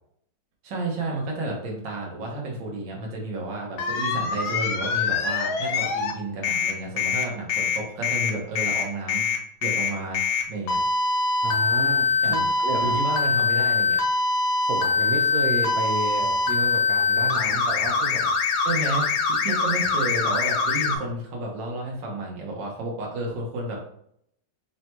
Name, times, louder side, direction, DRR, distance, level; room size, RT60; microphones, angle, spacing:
voice 1, 0.6-9.3 9.6-10.8 12.2-12.5 12.8-14.0 18.6-23.8, right 2 dB, 85° right, -2 dB, 1.7 m, -31 dB
sound 1, 3.8-6.1 6.4-21.0, left 4 dB, 70° left, 1.0 m, -23 dB
voice 2, 11.4-12.9 14.6-18.4 19.5-19.6, right 3 dB, 65° right, 2 dB, 1.0 m, -31 dB
4.0 x 2.2 x 4.3 m, 0.70 s
omnidirectional pair, 1.9 m